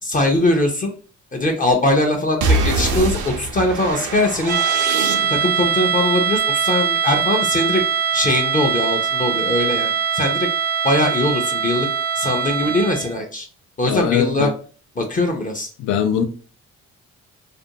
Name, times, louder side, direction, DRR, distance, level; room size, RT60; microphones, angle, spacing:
voice 1, 0.0-0.9 1.3-4.6 5.0-7.8 8.1-10.5 10.8-11.9 12.1-13.5 13.8-14.5 15.0-15.7, left 1 dB, 25° left, 0.5 m, -21 dB
sound 1, 2.4-5.7, right 2 dB, 75° right, 0.6 m, -23 dB
sound 2, 4.5-13.2, right 7 dB, 35° right, 0.4 m, -22 dB
voice 2, 13.8-14.5 15.8-16.2, left 8 dB, 80° left, 0.5 m, -20 dB
2.5 x 2.1 x 2.7 m
cardioid pair, 90°, 30 cm